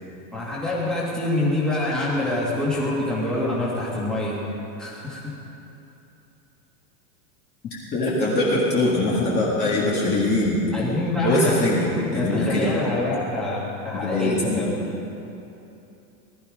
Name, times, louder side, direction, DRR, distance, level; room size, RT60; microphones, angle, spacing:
voice 1, 0.3-4.4 4.8-5.3 9.6-9.7 10.7-11.6 12.2-14.7, left 2 dB, ahead, -7 dB, 2.2 m, -26 dB
voice 2, 7.9-10.6 11.2-12.7 13.9-14.6, left 2 dB, 20° left, -5 dB, 2.0 m, -22 dB
19.0 x 13.0 x 5.1 m, 2.9 s
supercardioid pair, 165°, 49 cm